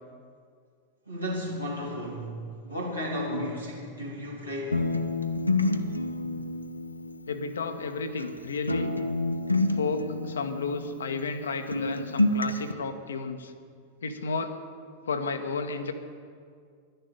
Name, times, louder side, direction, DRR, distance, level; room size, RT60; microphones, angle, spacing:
voice 1, 1.1-4.8, left 1 dB, 85° right, -5 dB, 3.1 m, -33 dB
sound 1, 4.7-8.4 8.7-11.5 11.7-12.7, left 2 dB, 85° left, 0.6 m, -29 dB
voice 2, 7.3-8.9 9.7-13.5 14.0-14.6 15.1-15.9, left 4 dB, 70° left, 8 dB, 0.9 m, -32 dB
11.0 x 6.7 x 9.3 m, 2.1 s
figure-of-eight pair, 90°, 0 cm